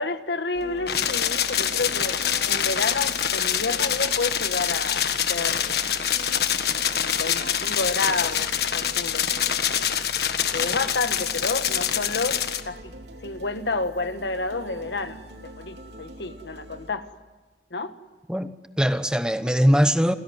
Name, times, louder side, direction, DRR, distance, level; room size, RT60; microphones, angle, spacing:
voice 1, 0.0-2.2 2.4-5.8 6.7-9.3 10.5-12.9 13.2-17.1 17.7-17.9, left 3 dB, 80° left, 1.5 m, -30 dB
sound 1, 0.5-16.9, right 1 dB, 80° right, 2.8 m, -42 dB
sound 2, 0.9-12.6, left 9 dB, 65° left, 1.5 m, -25 dB
voice 2, 18.3-20.1, equal, 5° right, 0.8 m, -21 dB
29.5 x 16.5 x 9.4 m
head